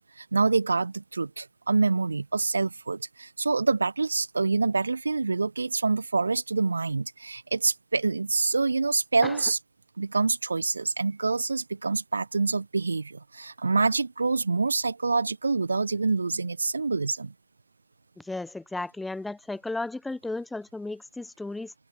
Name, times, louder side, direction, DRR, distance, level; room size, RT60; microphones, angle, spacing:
voice 1, 0.0-9.6 10.0-17.3, right 4 dB, 80° right, 0.8 m, -26 dB
voice 2, 18.2-21.7, left 2 dB, 5° left, 0.8 m, -34 dB
figure-of-eight pair, 90°, 0 cm